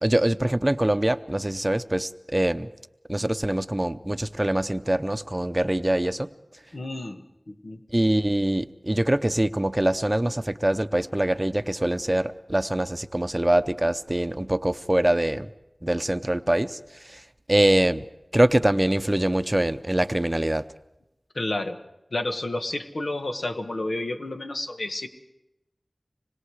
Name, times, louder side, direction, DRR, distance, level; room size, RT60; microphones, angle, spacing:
voice 1, 0.0-2.7 3.1-6.3 7.9-15.5 15.8-16.8 17.0-17.2 17.5-18.1 18.3-20.6, right 1 dB, 25° right, 11 dB, 0.7 m, -24 dB
voice 2, 6.7-7.8 21.3-21.8 22.1-25.1, left 2 dB, 80° left, 5 dB, 1.4 m, -30 dB
26.0 x 21.0 x 4.8 m, 0.91 s
wide cardioid pair, 40°, 0 cm